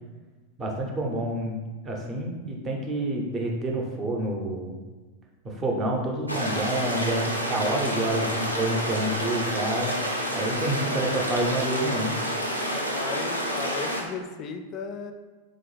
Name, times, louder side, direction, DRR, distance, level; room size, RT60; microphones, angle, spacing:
voice 1, 0.6-1.6 1.8-4.8 5.4-9.9 10.3-12.2, right 1 dB, 20° right, 0 dB, 0.7 m, -28 dB
sound 1, 6.3-14.0, equal, 90° right, 0.5 m, -29 dB
voice 2, 12.7-15.1, left 5 dB, 35° left, 6 dB, 0.4 m, -36 dB
3.8 x 2.8 x 3.2 m, 1.3 s
figure-of-eight pair, 90°, 0 cm